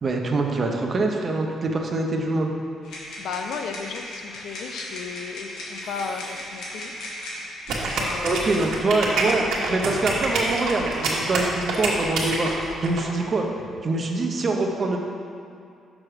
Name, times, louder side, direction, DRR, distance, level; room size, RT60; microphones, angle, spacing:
voice 1, 0.0-2.5 8.2-12.5 12.8-13.5 13.8-15.0, right 2 dB, 30° right, 2 dB, 0.6 m, -24 dB
sound 1, 2.8-8.6, left 1 dB, 85° left, 1.8 m, -37 dB
voice 2, 3.2-6.9 7.9-8.6, left 5 dB, 60° left, 5 dB, 0.5 m, -34 dB
sound 2, 5.7-6.5 8.1-8.8 10.3-11.2 12.2-12.5, left 2 dB, 40° left, 1.1 m, -42 dB
sound 3, 7.7-13.0, right 3 dB, 70° right, 1.2 m, -26 dB
6.2 x 6.0 x 4.9 m, 2.4 s
cardioid pair, 175°, 0 cm